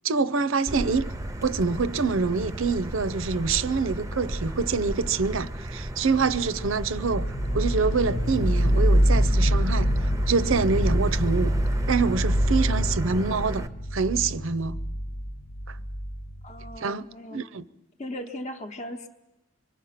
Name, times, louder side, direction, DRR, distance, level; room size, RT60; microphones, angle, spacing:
voice 1, 0.0-1.1 1.4-7.3 7.5-9.9 10.3-11.5 11.9-13.7 13.9-14.8 15.7-15.8 16.8-17.7, right 4 dB, 65° right, 0.7 m, -26 dB
Motor vehicle (road), 0.7-13.7, right 1 dB, 15° right, 0.7 m, -34 dB
sound 1, 6.9-16.8, equal, 70° left, 1.2 m, -25 dB
voice 2, 16.4-17.4 18.0-19.1, left 1 dB, 30° left, 0.9 m, -37 dB
25.5 x 23.0 x 5.8 m
head